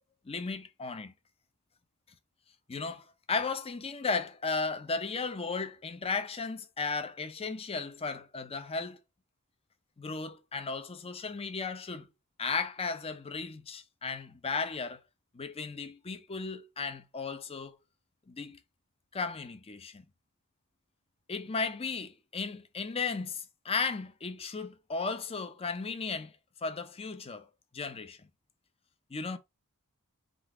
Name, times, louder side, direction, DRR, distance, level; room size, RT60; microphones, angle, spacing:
voice 1, 0.3-1.1 2.7-9.0 10.0-12.1 12.4-15.0 15.3-17.7 18.3-18.6 19.1-20.0 21.3-26.3 26.6-27.5 27.7-28.2 29.1-29.4, left 4 dB, 25° left, 0.5 m, -35 dB
3.8 x 2.4 x 4.5 m
head